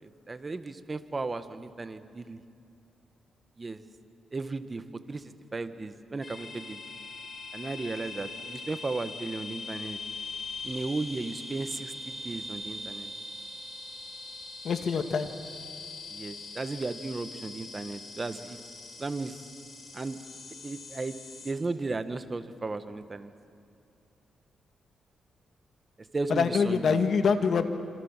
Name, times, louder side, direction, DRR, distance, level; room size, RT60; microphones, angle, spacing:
voice 1, 0.0-2.4 3.6-3.8 4.3-4.8 5.1-5.2 5.5-6.8 7.5-10.0 10.6-13.1 16.1-18.6 19.0-19.4 19.9-20.2 20.6-21.2 21.4-23.3 26.1-27.0, right 3 dB, 30° right, 10 dB, 1.7 m, -35 dB
sound 1, 6.2-21.5, left 3 dB, 40° left, 8.0 m, -42 dB
voice 2, 14.6-15.3 26.3-27.7, left 5 dB, 65° left, 8 dB, 2.1 m, -25 dB
27.0 x 26.5 x 7.6 m, 2.7 s
cardioid pair, 70°, 0 cm